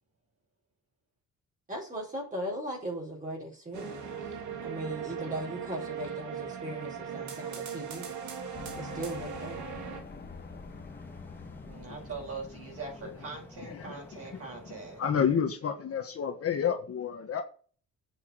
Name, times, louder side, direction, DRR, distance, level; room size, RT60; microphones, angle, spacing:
voice 1, 1.7-4.2 4.6-8.1 8.7-9.7, right 1 dB, 25° right, 4.6 m, -38 dB
sound 1, 3.7-10.0, right 7 dB, 70° right, 2.8 m, -39 dB
sound 2, 8.5-14.0, left 5 dB, 35° left, 1.3 m, -47 dB
sound 3, 8.9-15.0, left 2 dB, 5° left, 1.9 m, -50 dB
voice 2, 11.6-15.0, right 4 dB, 50° right, 5.8 m, -42 dB
voice 3, 13.6-14.4 14.7-17.4, left 7 dB, 50° left, 1.5 m, -31 dB
8.3 x 5.8 x 6.7 m
cardioid pair, 90°, 30 cm